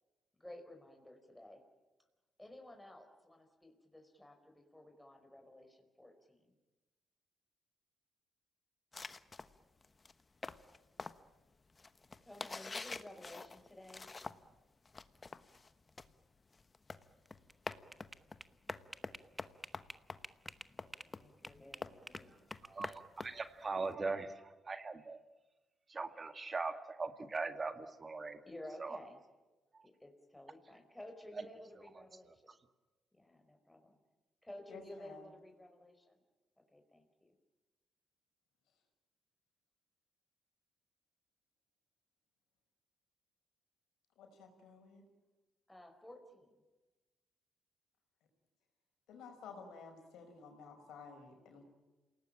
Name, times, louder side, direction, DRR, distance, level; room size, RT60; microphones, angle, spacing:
voice 1, 0.4-1.6 2.4-6.5 12.1-14.1 21.0-22.4 28.5-29.2 29.8-32.5 33.1-34.0 34.4-36.2 36.7-37.3 45.7-46.5, left 1 dB, 10° left, 5 dB, 5.0 m, -54 dB
sound 1, 8.9-14.6 14.9-23.9, left 3 dB, 30° left, 1.3 m, -47 dB
sound 2, 17.3-21.1 21.4-23.0, right 1 dB, 15° right, 1.3 m, -51 dB
voice 2, 22.6-25.2 25.9-28.4 28.8-29.0 29.7-29.8, right 3 dB, 35° right, 8 dB, 2.0 m, -40 dB
voice 3, 34.7-35.3 44.2-45.0 49.1-51.6, left 5 dB, 70° left, 4 dB, 5.5 m, -53 dB
28.0 x 18.5 x 9.0 m, 1.2 s
hypercardioid pair, 50°, 0 cm